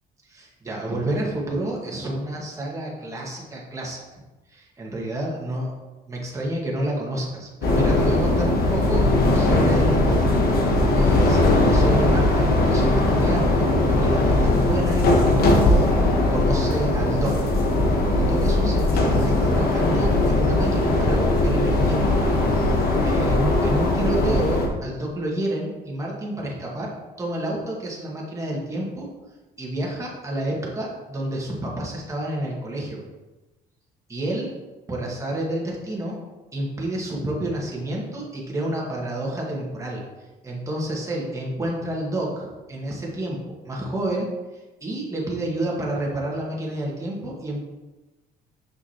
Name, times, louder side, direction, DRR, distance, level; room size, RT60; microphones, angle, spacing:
voice 1, 0.2-4.0 4.5-5.7 6.1-9.1 9.3-10.2 10.7-15.9 16.3-17.5 18.1-22.0 23.0-26.9 27.2-29.1 29.6-33.0 34.1-34.4 34.9-36.1 36.5-40.0 40.4-44.3 44.8-47.7, right 1 dB, 20° right, -3 dB, 1.7 m, -29 dB
sound 1, 7.6-24.7, left 2 dB, 65° left, 1.2 m, -19 dB
6.4 x 5.9 x 2.9 m, 1.1 s
cardioid pair, 110°, 17 cm